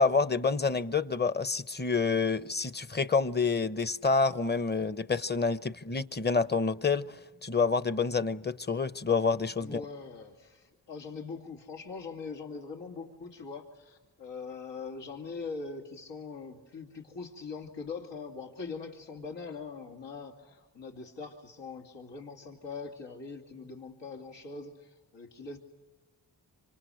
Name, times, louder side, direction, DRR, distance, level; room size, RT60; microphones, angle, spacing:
voice 1, 0.0-7.0 7.4-9.8, left 4 dB, 25° left, 1.0 m, -28 dB
voice 2, 9.6-25.6, left 4 dB, 80° left, 2.8 m, -42 dB
26.5 x 26.0 x 6.5 m
cardioid pair, 50°, 42 cm